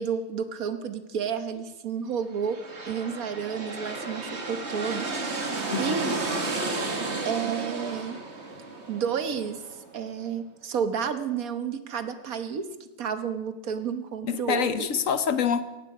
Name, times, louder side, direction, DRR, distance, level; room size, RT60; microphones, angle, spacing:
voice 1, 0.0-2.6 2.9-6.1 7.2-8.2 8.9-14.9, right 7 dB, 65° right, 9 dB, 1.5 m, -31 dB
sound 1, 2.4-10.0, right 3 dB, 45° right, 2.1 m, -33 dB
voice 2, 14.2-15.6, left 7 dB, 60° left, 12 dB, 1.1 m, -26 dB
17.5 x 15.5 x 4.9 m, 1.1 s
omnidirectional pair, 1.6 m